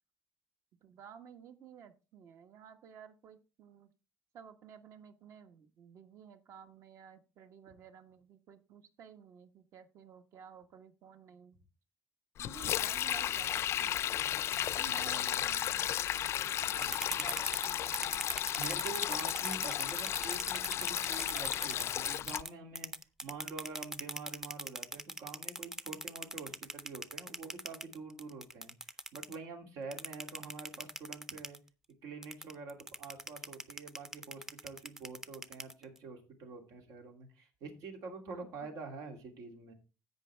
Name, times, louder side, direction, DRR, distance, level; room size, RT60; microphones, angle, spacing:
voice 1, 0.8-3.9 4.3-11.6 12.4-14.4 14.8-18.2 38.3-38.7, right 7 dB, 60° right, 8 dB, 1.3 m, -54 dB
Sink (filling or washing), 12.4-22.4, left 11 dB, 55° left, 0.4 m, -34 dB
voice 2, 14.9-15.4 16.8-16.9 18.6-22.9 23.2-31.6 32.0-39.7, right 4 dB, 90° right, 4 dB, 2.8 m, -46 dB
sound 1, 16.6-22.5 22.8-29.4 29.9-31.6 32.2-36.0, right 1 dB, 10° right, 0.5 m, -39 dB
16.0 x 5.6 x 3.4 m, 0.31 s
cardioid pair, 140°, 6 cm